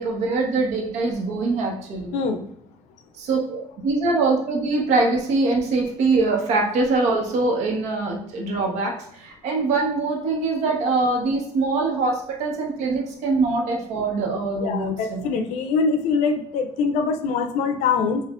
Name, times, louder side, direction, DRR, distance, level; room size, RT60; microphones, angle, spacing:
voice 1, 0.0-2.2 3.2-15.3, right 3 dB, 65° right, 0 dB, 1.0 m, -23 dB
voice 2, 2.1-2.4 14.6-18.2, left 5 dB, 70° left, 8 dB, 0.5 m, -23 dB
5.7 x 2.5 x 2.4 m, 0.68 s
cardioid pair, 160°, 12 cm